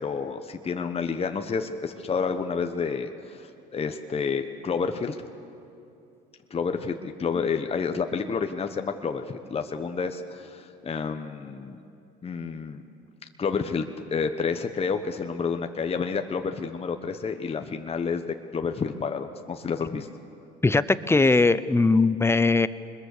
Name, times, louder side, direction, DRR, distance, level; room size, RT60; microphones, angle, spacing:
voice 1, 0.0-5.2 6.5-11.8 12.2-12.8 13.4-18.2 18.5-20.1, left 5 dB, 30° left, 6 dB, 1.2 m, -29 dB
voice 2, 20.6-22.7, left 3 dB, 10° left, 15 dB, 0.8 m, -20 dB
23.5 x 21.5 x 6.7 m, 2.6 s
supercardioid pair, 75°, 20 cm